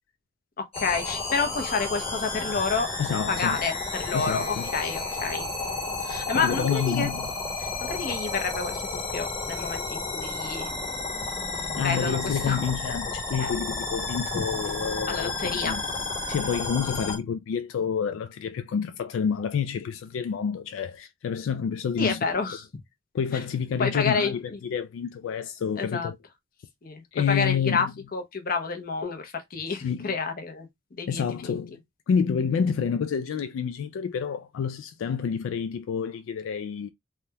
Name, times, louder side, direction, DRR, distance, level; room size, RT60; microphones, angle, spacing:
voice 1, 0.6-2.9 3.3-5.5 6.0-7.1 7.6-10.7 11.5-12.7 13.4-13.6 14.3-14.4 15.1-15.8 16.8-17.0 22.0-22.6 23.3-23.4 23.8-24.6 25.8-26.1 26.8-31.6, left 4 dB, 45° left, 0.7 m, -29 dB
sound 1, 0.7-17.2, left 3 dB, 30° left, 1.3 m, -32 dB
voice 2, 3.0-3.6 4.1-4.7 6.3-7.3 11.7-15.8 16.2-22.2 23.1-26.2 27.1-27.9 29.7-30.1 31.1-31.8 32.1-36.9, left 7 dB, 75° left, 0.3 m, -28 dB
3.3 x 2.2 x 2.7 m
head